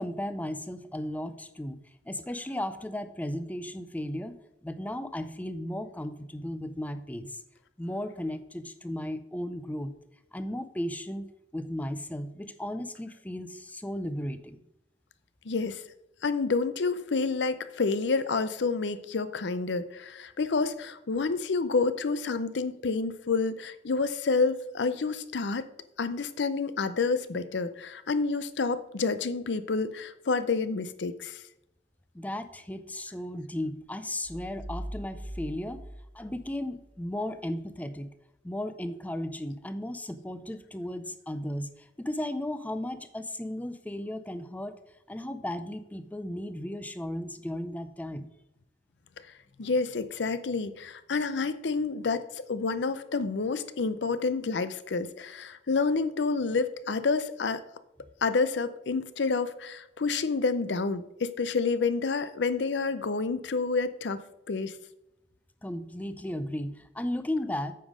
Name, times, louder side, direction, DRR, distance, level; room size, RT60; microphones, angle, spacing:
voice 1, 0.0-1.8 2.1-7.4 7.8-9.9 10.3-11.2 11.5-14.6 32.1-35.8 36.1-38.1 38.4-44.8 45.1-48.3 65.6-67.7, left 1 dB, 10° left, 11 dB, 0.4 m, -35 dB
voice 2, 15.5-15.8 16.2-25.7 26.0-31.4 49.6-57.6 58.2-64.2 64.5-64.7, left 4 dB, 70° left, 13 dB, 0.6 m, -29 dB
sound 1, 34.2-37.0, equal, 45° left, 2.9 m, -41 dB
8.6 x 5.3 x 5.0 m, 0.85 s
head